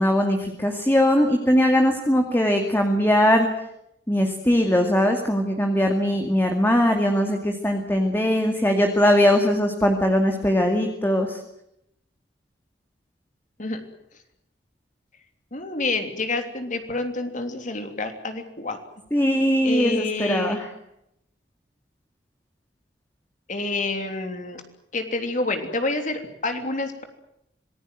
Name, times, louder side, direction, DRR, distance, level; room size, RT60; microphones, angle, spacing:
voice 1, 0.0-3.5 4.1-11.4 19.1-20.7, equal, 10° left, 4 dB, 2.3 m, -20 dB
voice 2, 15.5-18.8 19.6-20.6 23.5-24.6 24.9-27.0, left 3 dB, 45° left, 6 dB, 3.2 m, -28 dB
26.5 x 20.5 x 7.7 m, 0.79 s
head